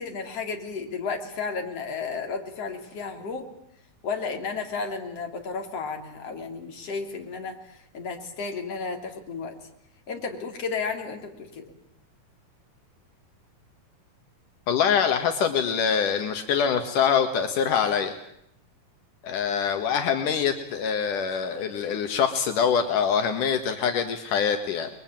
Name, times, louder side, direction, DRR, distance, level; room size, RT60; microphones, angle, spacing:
voice 1, 0.0-3.5 4.0-9.5 10.1-11.7, left 4 dB, 50° left, 4 dB, 4.2 m, -33 dB
voice 2, 14.7-18.2 19.2-24.9, left 7 dB, 80° left, 6 dB, 3.2 m, -24 dB
29.5 x 22.0 x 9.0 m, 0.75 s
omnidirectional pair, 3.7 m